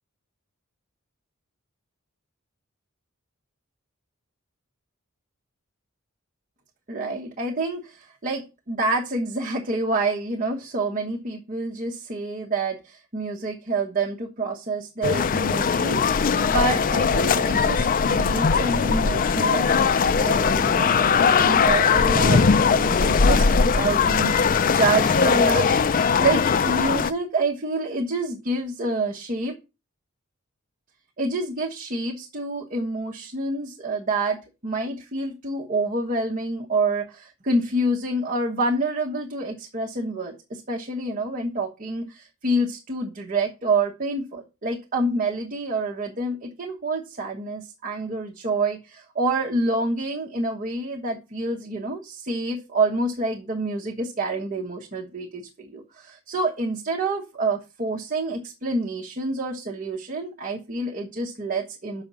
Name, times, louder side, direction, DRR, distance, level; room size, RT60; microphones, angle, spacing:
voice 1, 6.9-29.6 31.2-34.4 34.6-62.0, right 2 dB, 40° right, 0 dB, 1.1 m, -27 dB
sound 1, 15.0-27.1, left 5 dB, 40° left, 0.4 m, -20 dB
6.8 x 5.0 x 6.8 m, 0.29 s
head